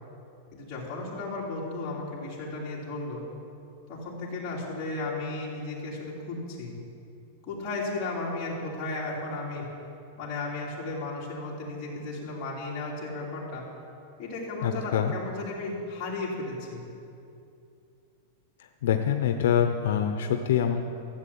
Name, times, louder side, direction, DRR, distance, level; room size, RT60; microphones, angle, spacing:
voice 1, 0.5-3.2 3.9-6.7 7.4-9.7 10.2-13.6 14.2-16.8, left 2 dB, 25° left, -6 dB, 3.2 m, -34 dB
voice 2, 14.6-15.1 18.8-20.8, left 9 dB, 70° left, 6 dB, 0.7 m, -25 dB
14.0 x 7.7 x 8.6 m, 2.7 s
supercardioid pair, 170°, 0 cm